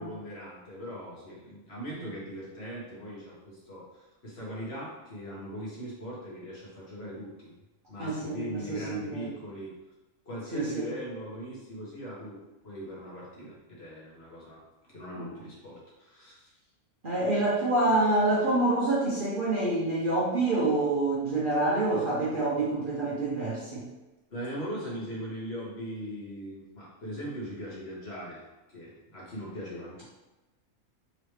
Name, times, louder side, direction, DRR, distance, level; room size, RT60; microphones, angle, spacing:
voice 1, 0.0-7.5 7.9-9.7 10.3-12.4 12.6-16.5 24.3-28.4 28.7-30.0, equal, 50° left, -7 dB, 1.6 m, -40 dB
voice 2, 8.0-9.2 10.5-10.9 15.2-15.4 17.0-23.8, right 2 dB, 45° right, -8 dB, 0.9 m, -27 dB
3.9 x 3.1 x 3.2 m, 1.1 s
omnidirectional pair, 1.4 m